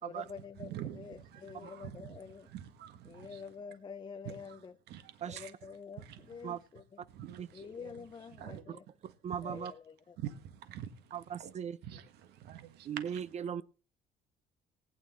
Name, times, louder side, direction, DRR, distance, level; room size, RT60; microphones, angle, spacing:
voice 1, 0.0-2.5 3.0-4.8 5.3-7.0 7.5-8.9 9.4-10.2, left 6 dB, 25° left, 0.5 m, -47 dB
voice 2, 0.6-2.1 2.5-3.4 4.2-4.6 4.9-5.5 6.0-6.2 7.1-7.9 8.4-8.6 9.0-9.6 10.2-11.5 11.8-13.3, right 11 dB, 80° right, 1.5 m, -46 dB
voice 3, 9.2-9.7 11.1-11.8 12.9-13.6, right 8 dB, 40° right, 0.5 m, -38 dB
19.0 x 9.4 x 3.1 m
cardioid pair, 110°, 17 cm